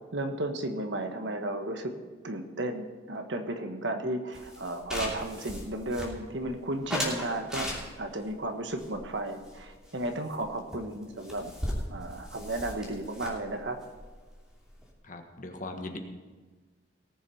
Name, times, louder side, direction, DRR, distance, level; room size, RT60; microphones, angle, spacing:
voice 1, 0.1-1.9 2.2-11.5 11.9-13.8, right 1 dB, 65° right, 6 dB, 1.4 m, -34 dB
sound 1, 4.3-6.4 6.9-8.2 8.8-10.0 10.3-10.4 10.7-10.8 11.0-14.9, left 1 dB, 5° right, 2.9 m, -37 dB
voice 2, 15.0-16.0, left 2 dB, 40° left, 4 dB, 1.4 m, -39 dB
19.0 x 7.4 x 5.7 m, 1.4 s
head